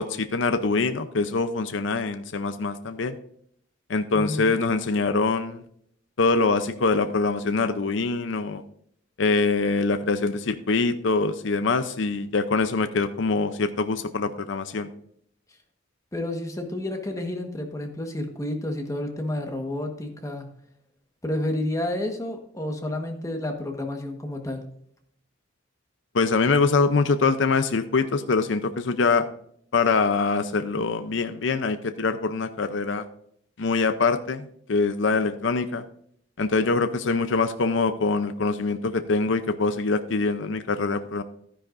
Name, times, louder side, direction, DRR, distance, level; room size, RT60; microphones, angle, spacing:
voice 1, 0.0-3.2 3.9-5.6 6.2-8.6 9.2-14.9 26.1-29.3 29.7-33.0 33.6-35.8 36.4-41.2, left 4 dB, 65° left, 10 dB, 0.6 m, -24 dB
voice 2, 4.1-4.5 16.1-20.5 21.2-24.7, left 1 dB, 15° left, 3 dB, 1.3 m, -30 dB
12.0 x 10.0 x 2.6 m, 0.67 s
head